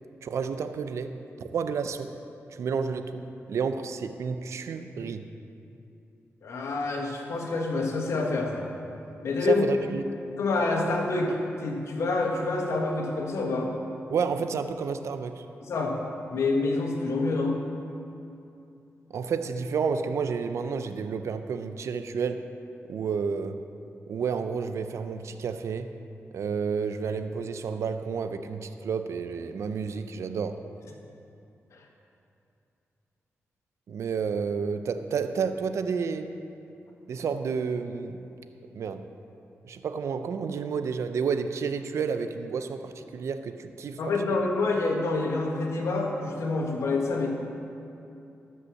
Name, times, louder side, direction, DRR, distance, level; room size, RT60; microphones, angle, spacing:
voice 1, 0.2-2.1 2.5-5.3 9.4-10.0 14.1-15.4 19.1-22.4 22.9-23.6 24.1-25.9 26.3-30.6 33.9-36.3 37.1-38.2 38.7-39.0 39.6-44.0, right 5 dB, 75° right, 9 dB, 0.5 m, -30 dB
voice 2, 6.4-8.7 9.2-9.6 10.4-13.7 15.6-15.9 16.3-17.6 31.7-31.8 44.0-47.3, left 3 dB, 75° left, 1 dB, 1.5 m, -27 dB
12.5 x 5.5 x 7.2 m, 2.7 s
cardioid pair, 90°, 5 cm